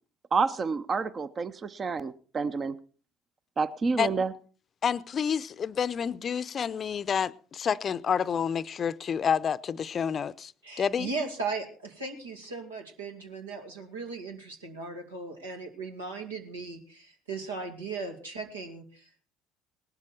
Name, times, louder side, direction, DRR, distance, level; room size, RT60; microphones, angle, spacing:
voice 1, 0.3-2.8 3.6-4.3, right 4 dB, 35° right, 0.8 m, -29 dB
voice 2, 4.8-10.5 10.8-11.1, left 7 dB, 40° left, 0.6 m, -29 dB
voice 3, 10.6-19.2, right 4 dB, 85° right, 2.3 m, -37 dB
18.5 x 12.0 x 4.4 m
hypercardioid pair, 60°, 0 cm